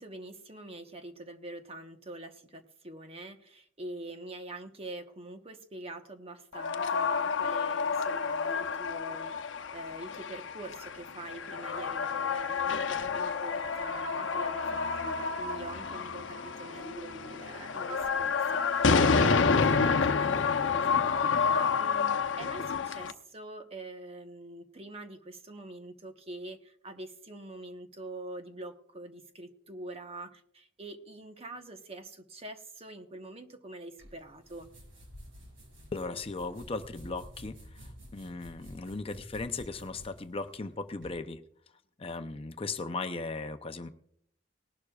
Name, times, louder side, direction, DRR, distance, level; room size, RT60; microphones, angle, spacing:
voice 1, 0.0-34.7, right 2 dB, 30° right, 6 dB, 1.1 m, -45 dB
sound 1, 6.5-23.1, left 5 dB, 80° left, 0.7 m, -29 dB
sound 2, 34.0-41.2, equal, 90° right, 6.0 m, -50 dB
voice 2, 35.9-41.4 42.0-43.9, left 3 dB, 30° left, 8 dB, 0.6 m, -37 dB
19.0 x 11.5 x 2.4 m, 0.66 s
head